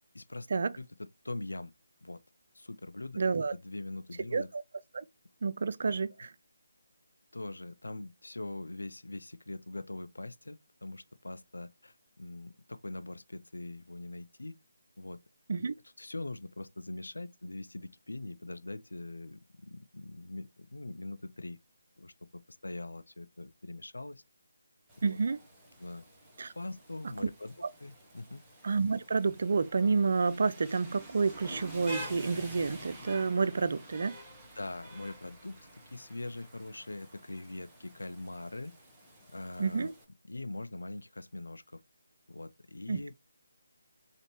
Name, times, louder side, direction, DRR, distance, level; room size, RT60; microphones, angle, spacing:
voice 1, 0.1-0.5 0.8-1.7 2.0-2.2 2.5-3.2 3.5-4.5 7.3-14.6 15.0-15.2 16.0-21.6 22.0-24.2 25.0-25.2 25.8-26.0 26.5-27.5 27.8-28.4 34.5-35.6 35.9-38.7 39.3-39.9 40.3-41.8 42.3-43.1, left 2 dB, 85° left, 0.4 m, -42 dB
voice 2, 3.2-3.5 4.3-4.6 4.9-5.0 5.4-6.3 15.5-15.7 25.0-25.4 26.4-26.5 27.2-27.3 28.6-34.2 39.6-39.9 42.9-43.0, right 4 dB, 55° right, 0.4 m, -29 dB
Rain, 24.9-40.0, right 1 dB, 5° right, 1.2 m, -49 dB
3.9 x 3.2 x 3.0 m
figure-of-eight pair, 155°, 0 cm